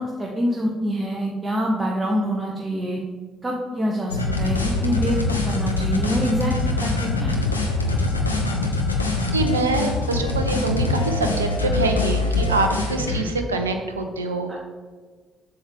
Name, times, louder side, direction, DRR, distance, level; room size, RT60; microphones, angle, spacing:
voice 1, 0.0-3.0 3.4-6.5 6.8-7.4 14.5-14.6, equal, 20° right, -1 dB, 1.1 m, -25 dB
sound 1, 4.1-13.2, left 3 dB, 85° left, 0.7 m, -23 dB
voice 2, 9.3-14.6, right 3 dB, 80° right, 5 dB, 0.5 m, -25 dB
7.6 x 7.5 x 3.6 m, 1.5 s
figure-of-eight pair, 45°, 0 cm